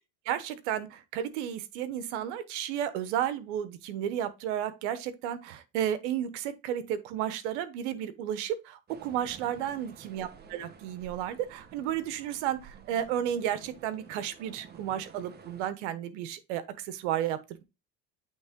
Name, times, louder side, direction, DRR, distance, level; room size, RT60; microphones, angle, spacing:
voice 1, 0.2-17.6, right 10 dB, 85° right, 1.1 m, -33 dB
sound 1, 8.9-15.7, right 6 dB, 30° right, 1.0 m, -51 dB
8.7 x 3.3 x 3.6 m
supercardioid pair, 110°, 34 cm